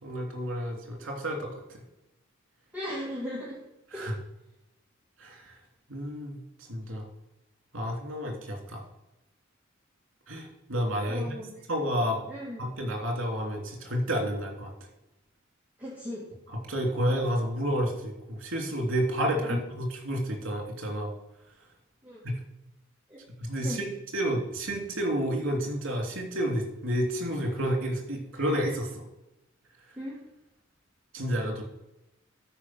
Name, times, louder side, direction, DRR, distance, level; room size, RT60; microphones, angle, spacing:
voice 1, 0.0-1.8 3.9-4.1 5.2-5.5 5.9-6.4 6.7-7.0 7.7-8.8 10.3-11.4 11.7-12.2 12.6-14.7 16.7-21.1 22.2-22.4 23.4-23.9 24.1-29.0 31.1-31.6, equal, 75° right, 1 dB, 3.1 m, -30 dB
voice 2, 2.7-3.6 3.9-4.1 11.0-11.5 12.0-12.6 15.8-16.3 19.4-19.6 22.0-22.2 23.1-23.2 23.6-23.8 30.0-30.2, equal, 10° right, -7 dB, 2.0 m, -37 dB
12.5 x 5.0 x 6.0 m, 0.92 s
head